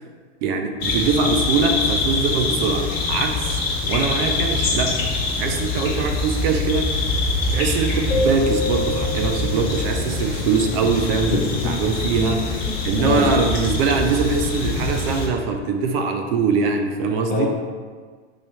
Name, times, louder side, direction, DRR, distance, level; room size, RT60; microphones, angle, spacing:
voice 1, 0.4-3.6 3.9-5.0 5.4-17.5, right 4 dB, 55° right, 4 dB, 0.5 m, -23 dB
sound 1, 0.8-15.3, left 3 dB, 45° left, 0.9 m, -24 dB
sound 2, 8.1-10.7, left 2 dB, 75° left, 1.1 m, -27 dB
voice 2, 11.3-11.7 12.1-13.3 14.7-15.0 17.3-17.5, left 5 dB, 25° left, -1 dB, 0.5 m, -26 dB
3.1 x 2.3 x 4.0 m, 1.6 s
hypercardioid pair, 120°, 36 cm